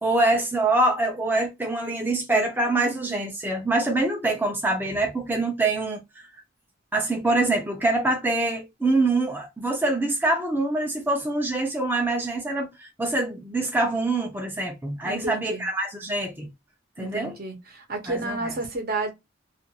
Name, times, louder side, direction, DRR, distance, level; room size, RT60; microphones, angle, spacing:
voice 1, 0.0-6.3 6.9-16.5 17.0-17.4 18.1-18.6, right 2 dB, 10° right, 0.4 m, -25 dB
voice 2, 15.0-15.6 17.0-19.1, right 2 dB, 50° right, 0.8 m, -31 dB
2.4 x 2.3 x 2.8 m
head